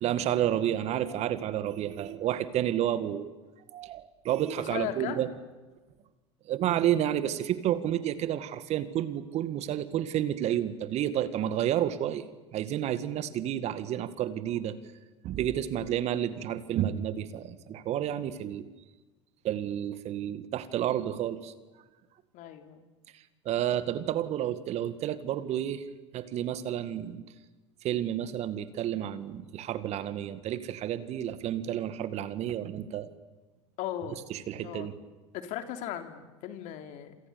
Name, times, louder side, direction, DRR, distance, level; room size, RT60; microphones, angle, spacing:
voice 1, 0.0-3.3 3.7-5.3 6.5-12.2 12.5-14.8 15.2-18.7 19.4-21.5 23.5-25.8 26.1-27.2 27.8-33.1 34.3-34.9, right 11 dB, 45° right, 12 dB, 2.1 m, -30 dB
voice 2, 4.7-5.2 22.3-22.9 33.8-34.2 34.6-34.9 35.3-37.2, left 11 dB, 55° left, 7 dB, 3.2 m, -37 dB
28.0 x 27.5 x 7.0 m, 1.2 s
hypercardioid pair, 85°, 15 cm